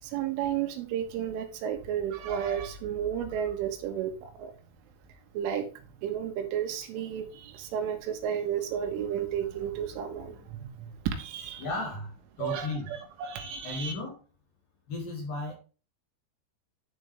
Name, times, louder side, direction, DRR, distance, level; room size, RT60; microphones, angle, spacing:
voice 1, 0.0-4.5 5.3-11.7 12.4-13.9, right 9 dB, 80° right, 3.5 m, -33 dB
voice 2, 11.6-12.9 13.6-14.2 14.9-15.6, left 2 dB, 50° left, 3.6 m, -35 dB
10.5 x 5.3 x 3.3 m
omnidirectional pair, 5.8 m